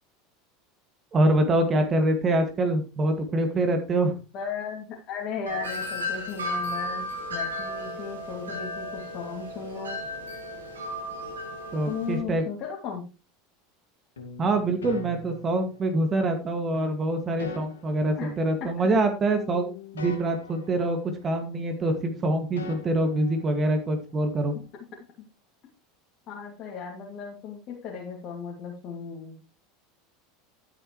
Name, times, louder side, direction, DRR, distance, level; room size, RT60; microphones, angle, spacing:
voice 1, 1.1-4.1 11.7-12.4 14.4-21.0 21.2-24.5, right 2 dB, 30° right, 5 dB, 2.3 m, -25 dB
voice 2, 4.3-10.0 11.8-13.0 18.2-18.3 18.6-18.9 26.3-29.4, left 6 dB, 45° left, -2 dB, 2.7 m, -36 dB
Wind chime, 5.5-12.2, left 1 dB, 80° right, 3.2 m, -34 dB
sound 1, 14.2-16.1 16.7-19.0 19.3-21.6 21.9-24.0, left 4 dB, 75° left, 2.2 m, -43 dB
12.5 x 8.8 x 3.2 m, 0.31 s
figure-of-eight pair, 80°, 0 cm